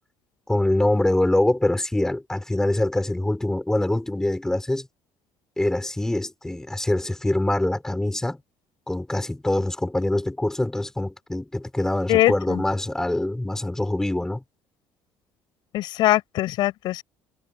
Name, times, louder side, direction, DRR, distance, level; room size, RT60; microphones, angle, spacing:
voice 1, 0.5-4.9 5.6-8.4 8.9-14.4, left 1 dB, 5° left, 6.4 m, -24 dB
voice 2, 12.1-12.6 15.7-17.0, left 16 dB, 70° left, 7.7 m, -22 dB
cardioid pair, 135°, 8 cm